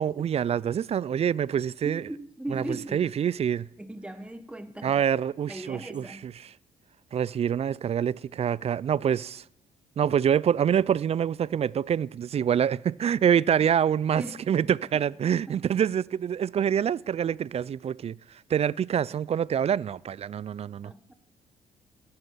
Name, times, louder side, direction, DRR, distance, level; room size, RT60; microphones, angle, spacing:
voice 1, 0.0-2.0 2.5-2.6 2.9-3.7 4.8-6.3 7.1-9.4 10.0-18.1 18.5-20.9, right 8 dB, 45° right, 0.4 m, -26 dB
voice 2, 1.8-3.1 3.8-5.0 5.5-6.3 14.2-14.6 20.8-21.1, right 1 dB, 5° right, 1.4 m, -39 dB
14.5 x 9.5 x 5.7 m
supercardioid pair, 60°, 15 cm